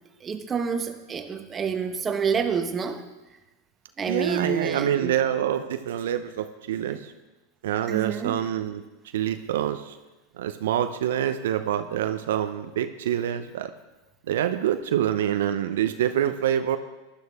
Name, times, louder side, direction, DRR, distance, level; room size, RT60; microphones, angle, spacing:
voice 1, 0.2-3.0 4.0-5.2 6.9-7.0 7.9-8.5, right 6 dB, 25° right, 7 dB, 1.1 m, -28 dB
voice 2, 4.1-7.1 7.6-8.8 9.1-10.0 10.4-13.7 14.3-16.8, right 10 dB, 75° right, 9 dB, 0.6 m, -26 dB
15.5 x 11.0 x 3.6 m, 1.1 s
hypercardioid pair, 105°, 0 cm